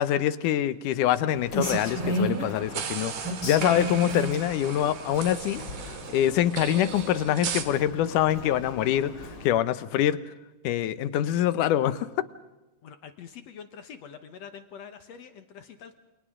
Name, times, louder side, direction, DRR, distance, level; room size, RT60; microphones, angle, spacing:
voice 1, 0.0-3.2 3.4-5.6 5.9-10.2 10.6-12.1, left 11 dB, 85° left, 14 dB, 2.4 m, -25 dB
Rain, 1.3-9.5, equal, 35° left, 3.7 m, -34 dB
sound 1, 1.6-7.6, right 8 dB, 90° right, 3.3 m, -37 dB
voice 2, 12.8-16.0, left 7 dB, 65° left, 9 dB, 2.1 m, -45 dB
29.0 x 28.5 x 3.8 m, 1.0 s
omnidirectional pair, 3.6 m